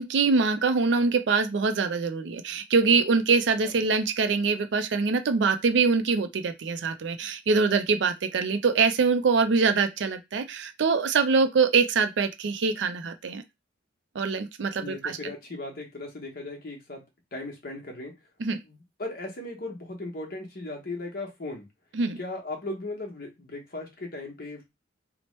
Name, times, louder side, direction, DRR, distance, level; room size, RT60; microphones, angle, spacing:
voice 1, 0.0-13.4 14.1-15.2 18.4-18.6 21.9-22.2, right 4 dB, 70° right, 0.4 m, -24 dB
voice 2, 14.8-17.0 17.3-18.1 18.5-21.7 22.2-24.6, left 2 dB, 55° left, 0.9 m, -37 dB
2.9 x 2.1 x 3.0 m
head